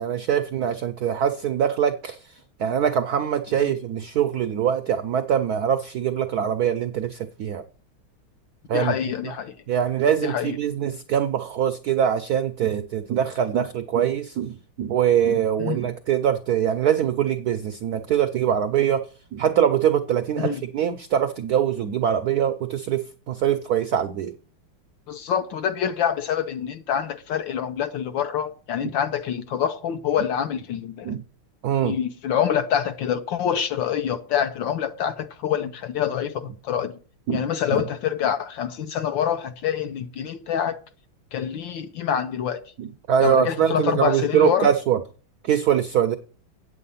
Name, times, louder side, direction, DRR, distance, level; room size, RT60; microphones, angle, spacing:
voice 1, 0.0-2.2 2.6-7.6 8.7-8.9 9.7-24.3 31.0-31.2 31.6-32.0 37.3-37.4 37.7-37.8 42.8-45.0 45.4-46.2, right 9 dB, 75° right, 0.8 m, -23 dB
voice 2, 8.7-9.6 10.2-10.6 15.6-15.9 20.4-20.6 25.1-31.2 31.8-37.0 37.3-40.8 41.3-42.6 43.2-44.7, left 9 dB, 70° left, 1.4 m, -26 dB
8.5 x 8.3 x 5.6 m
omnidirectional pair, 2.3 m